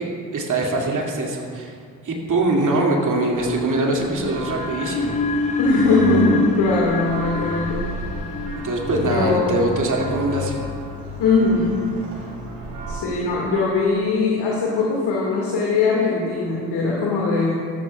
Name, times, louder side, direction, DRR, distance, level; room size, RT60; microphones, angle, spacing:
voice 1, 0.0-1.8 2.0-5.2 8.6-10.7, right 2 dB, 40° right, 0 dB, 2.4 m, -23 dB
Church bell, 3.3-13.0, right 2 dB, 60° right, 3.0 m, -35 dB
sound 1, 4.5-11.4, left 4 dB, 20° left, 0.4 m, -28 dB
voice 2, 5.6-7.9 9.0-9.5 11.2-11.8 12.9-17.5, left 3 dB, 55° left, -4 dB, 2.1 m, -20 dB
14.0 x 12.0 x 2.4 m, 2.2 s
hypercardioid pair, 50°, 47 cm